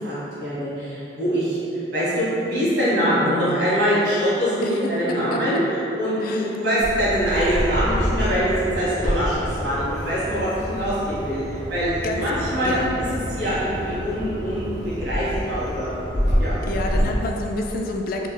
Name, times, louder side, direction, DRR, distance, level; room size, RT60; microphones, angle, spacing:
voice 1, 0.0-5.6 6.0-12.8 13.3-16.0 16.4-16.6, equal, 85° right, -10 dB, 1.5 m, -24 dB
voice 2, 3.2-3.6 4.6-5.6 6.2-6.6 12.0-12.3 12.6-12.9 16.6-18.3, left 2 dB, 55° left, 2 dB, 0.3 m, -29 dB
Bird vocalization bird call bird song, 6.8-17.0, equal, 65° right, 1.1 m, -27 dB
4.1 x 3.2 x 2.3 m, 3.0 s
head